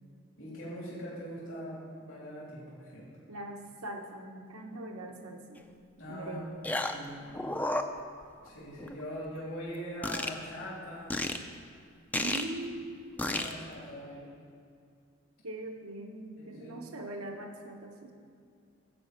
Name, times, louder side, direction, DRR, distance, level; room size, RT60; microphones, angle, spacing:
voice 1, 0.4-3.1 6.0-6.4 6.8-7.3 8.4-11.2 13.2-14.3 16.4-16.8, equal, 70° left, -7 dB, 3.3 m, -42 dB
voice 2, 3.3-5.7 6.1-6.6 12.2-13.0 15.4-18.1, right 2 dB, 85° right, 3 dB, 1.0 m, -41 dB
sound 1, 5.6-5.7 6.6-7.1 7.3-8.5 8.8-9.0 10.0-10.3 11.1-11.4 12.1-12.4 13.2-13.5, left 1 dB, 5° left, 0.4 m, -31 dB
12.5 x 5.3 x 8.0 m, 2.4 s
head